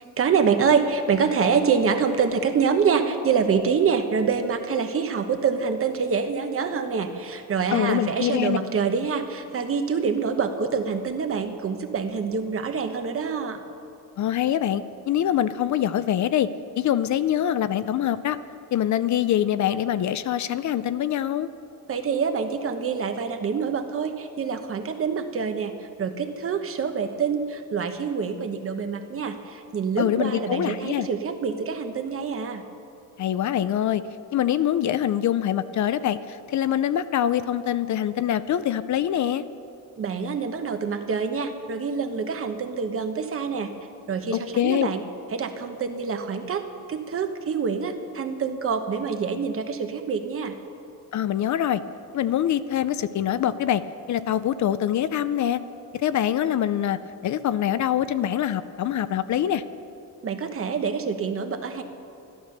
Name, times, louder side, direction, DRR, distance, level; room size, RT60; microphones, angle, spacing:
voice 1, 0.2-13.6 21.9-25.7 26.0-32.6 40.0-43.7 44.1-45.0 45.3-50.5 60.2-61.8, right 6 dB, 40° right, 7 dB, 1.0 m, -26 dB
voice 2, 7.7-8.6 14.2-16.5 16.8-18.4 18.7-21.5 30.0-31.1 33.2-34.0 34.3-39.4 44.6-44.9 51.1-51.8 52.1-53.8 54.1-55.6 55.9-59.6, left 11 dB, 55° left, 14 dB, 0.5 m, -24 dB
13.0 x 11.5 x 6.6 m, 2.5 s
wide cardioid pair, 170°, 34 cm